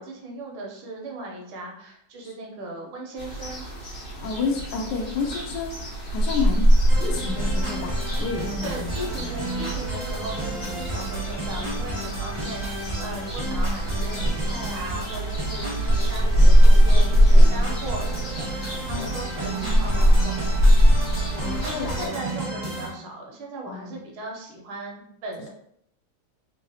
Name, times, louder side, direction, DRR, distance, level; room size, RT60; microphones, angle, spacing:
voice 1, 0.0-3.7 8.6-20.3 21.3-25.5, right 2 dB, 75° right, 0 dB, 1.6 m, -37 dB
sound 1, 3.2-22.1, equal, 40° left, 0.9 m, -21 dB
voice 2, 4.2-9.3 18.9-19.2 21.3-22.1 23.7-24.0, left 4 dB, 80° left, 1 dB, 0.9 m, -31 dB
sound 2, 6.9-22.9, right 1 dB, 30° right, 0.5 m, -33 dB
3.8 x 2.8 x 2.7 m, 0.70 s
omnidirectional pair, 2.4 m